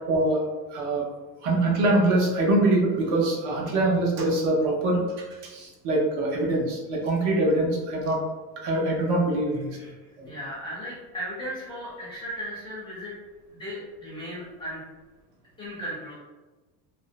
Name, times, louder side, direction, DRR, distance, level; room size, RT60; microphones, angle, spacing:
voice 1, 0.1-0.4 0.7-1.1 1.4-8.2 8.6-9.8 10.2-10.3, right 2 dB, 70° right, -1 dB, 0.8 m, -24 dB
voice 2, 10.2-13.1 13.5-14.8 15.6-16.1, equal, 10° left, -9 dB, 0.5 m, -36 dB
2.6 x 2.0 x 2.5 m, 1.2 s
cardioid pair, 170°, 44 cm